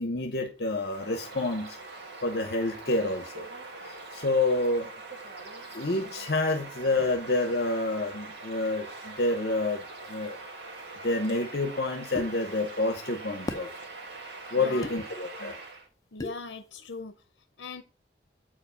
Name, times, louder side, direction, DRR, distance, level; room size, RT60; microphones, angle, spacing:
voice 1, 0.0-1.8 2.2-3.5 3.8-4.9 5.7-10.4 11.0-13.7 14.5-15.5, left 2 dB, 60° left, 0.9 m, -28 dB
Bird vocalization bird call bird song, 0.6-15.9, right 3 dB, 75° right, 1.9 m, -43 dB
sound 1, 12.2-12.3 13.5-13.7 14.8-15.0 16.2-16.4, left 1 dB, 20° left, 0.7 m, -34 dB
voice 2, 14.5-15.0 15.3-15.5 16.1-17.1 17.6-17.8, left 4 dB, 85° left, 0.7 m, -40 dB
8.7 x 4.9 x 5.6 m
head